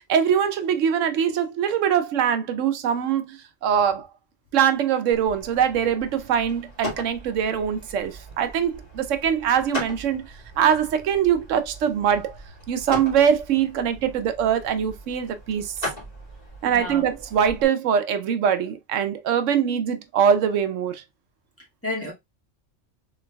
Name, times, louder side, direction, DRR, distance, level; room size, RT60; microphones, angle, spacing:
voice 1, 0.0-4.1 4.5-12.4 12.7-15.7 16.6-21.0, right 8 dB, 80° right, 1.0 m, -23 dB
sound 1, 5.1-17.6, left 1 dB, 30° left, 2.3 m, -39 dB
voice 2, 16.7-17.1 21.6-22.1, left 1 dB, 10° left, 1.5 m, -32 dB
3.8 x 3.5 x 2.2 m
omnidirectional pair, 1.3 m